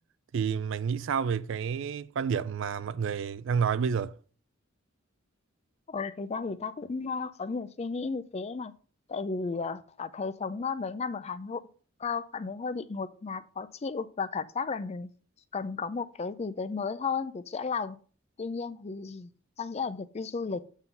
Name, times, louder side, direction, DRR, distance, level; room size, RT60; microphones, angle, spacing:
voice 1, 0.3-4.2, right 6 dB, 60° right, 0.4 m, -29 dB
voice 2, 5.9-8.7 9.1-11.7 12.0-15.1 15.5-18.0 18.4-19.3 19.6-20.7, left 4 dB, 30° left, 0.4 m, -34 dB
8.1 x 3.8 x 5.4 m
head